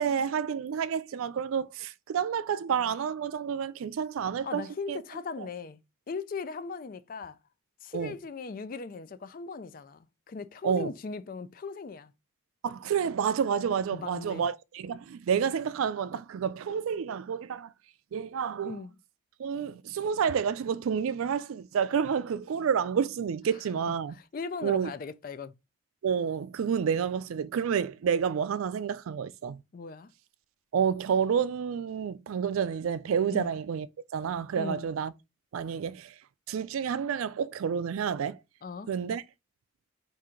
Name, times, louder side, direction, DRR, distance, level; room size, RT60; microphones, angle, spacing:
voice 1, 0.0-5.0 5.4-5.5 7.9-8.1 10.6-10.9 12.6-17.7 18.1-18.8 19.4-24.2 24.6-24.9 26.0-29.6 30.7-33.9 34.1-35.1 35.5-36.1 36.5-38.4 38.9-39.2, right 7 dB, 85° right, 0.3 m, -29 dB
voice 2, 4.4-5.8 6.1-7.4 7.8-12.1 13.9-14.4 18.6-19.0 24.2-25.5 29.7-30.1 33.3-33.5 34.5-34.9 38.6-38.9, left 5 dB, 40° left, 0.3 m, -38 dB
4.3 x 2.6 x 3.7 m
head